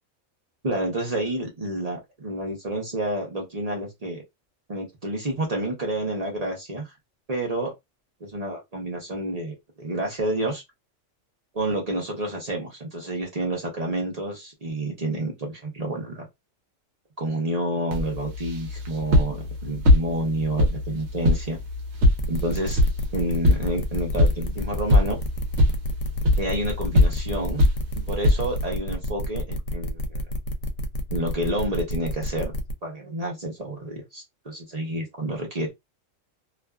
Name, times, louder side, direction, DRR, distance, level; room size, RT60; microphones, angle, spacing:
voice 1, 0.6-4.2 4.7-6.9 7.3-7.7 8.2-10.6 11.5-16.2 17.2-21.6 22.3-22.8 23.1-25.2 26.4-27.6 28.1-30.2 31.1-32.5 32.8-35.7, right 1 dB, 40° right, 0.6 m, -29 dB
sound 1, 17.9-28.7, left 1 dB, 65° right, 0.9 m, -23 dB
sound 2, 22.2-32.7, equal, 75° left, 0.9 m, -30 dB
2.4 x 2.3 x 2.3 m
omnidirectional pair, 1.4 m